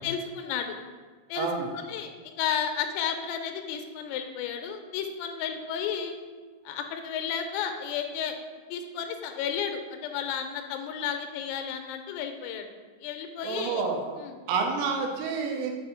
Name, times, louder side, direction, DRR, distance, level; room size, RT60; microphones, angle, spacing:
voice 1, 0.0-0.8 1.3-1.5 1.7-6.2 6.7-8.4 8.7-12.7 13.0-13.8 14.2-14.4, left 8 dB, 90° left, 6 dB, 3.3 m, -32 dB
voice 2, 1.4-1.7 13.4-14.2 14.5-15.7, right 5 dB, 90° right, 1 dB, 3.5 m, -29 dB
7.7 x 2.7 x 5.6 m, 1.5 s
omnidirectional pair, 5.8 m